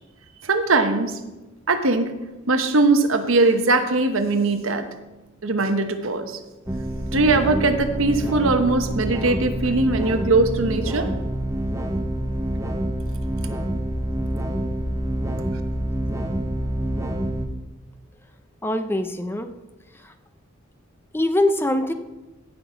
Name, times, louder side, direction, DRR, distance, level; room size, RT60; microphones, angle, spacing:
voice 1, 0.4-1.1 1.7-2.1 2.5-4.9 5.4-6.3 7.1-11.1, right 3 dB, 75° right, 7 dB, 1.1 m, -20 dB
sound 1, 6.7-17.5, right 1 dB, 15° right, 0.9 m, -27 dB
voice 2, 18.6-19.5 19.9-20.1 21.1-21.9, left 1 dB, 10° left, 8 dB, 0.5 m, -23 dB
16.0 x 6.0 x 5.0 m, 1.1 s
head